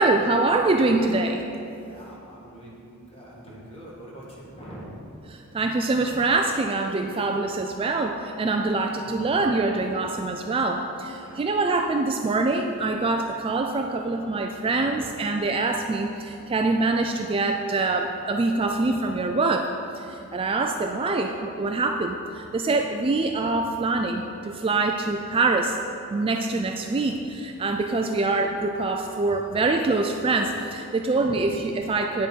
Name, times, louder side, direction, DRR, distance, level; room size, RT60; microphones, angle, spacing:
voice 1, 0.0-1.4 5.3-19.7 20.0-25.8 26.1-32.3, right 3 dB, 25° right, 4 dB, 0.3 m, -24 dB
voice 2, 1.8-4.9 5.9-6.0 9.0-9.4 11.1-11.4 13.4-13.5 14.7-15.1 26.9-27.2 31.1-31.5, right 1 dB, 25° left, -5 dB, 1.8 m, -44 dB
9.5 x 6.5 x 4.5 m, 2.7 s
head